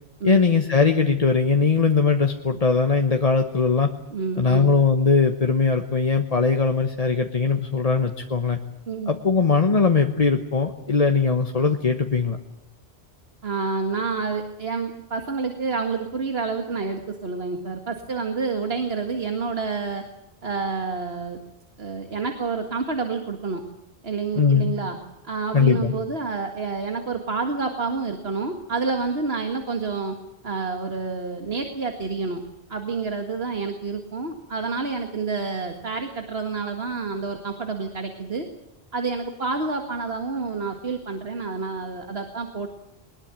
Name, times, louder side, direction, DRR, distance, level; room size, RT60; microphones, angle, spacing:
voice 1, 0.2-3.9 4.4-8.6 9.1-12.4 24.4-24.7 25.5-25.9, left 4 dB, 35° left, 5 dB, 1.2 m, -20 dB
voice 2, 4.1-4.7 8.9-9.1 13.4-20.0 20.4-21.4 21.8-23.6 24.0-25.0 25.2-30.2 30.4-32.4 32.7-38.5 38.9-42.7, right 4 dB, 70° right, 5 dB, 2.1 m, -28 dB
22.0 x 20.5 x 8.9 m, 0.85 s
omnidirectional pair, 1.1 m